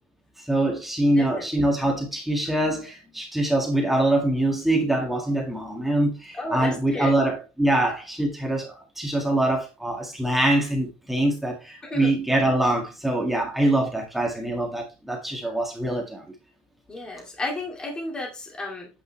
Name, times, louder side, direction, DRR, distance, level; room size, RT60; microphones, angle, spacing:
voice 1, 0.4-16.2, right 1 dB, 5° right, 1.9 m, -24 dB
voice 2, 1.1-1.6 6.3-7.1 11.8-12.1 16.9-18.9, left 2 dB, 15° left, 2.3 m, -33 dB
8.7 x 5.4 x 3.4 m
cardioid pair, 170°, 6 cm